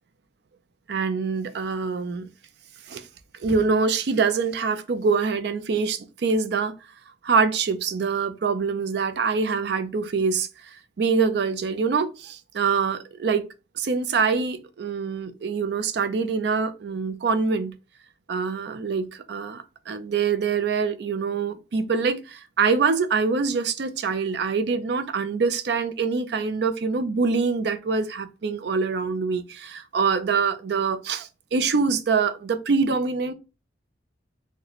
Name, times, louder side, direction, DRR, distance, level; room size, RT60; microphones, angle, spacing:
voice 1, 0.9-2.3 2.9-3.1 3.4-6.7 7.2-13.4 13.8-17.7 18.3-33.3, right 5 dB, 65° right, 0.4 m, -25 dB
3.9 x 2.1 x 2.9 m
head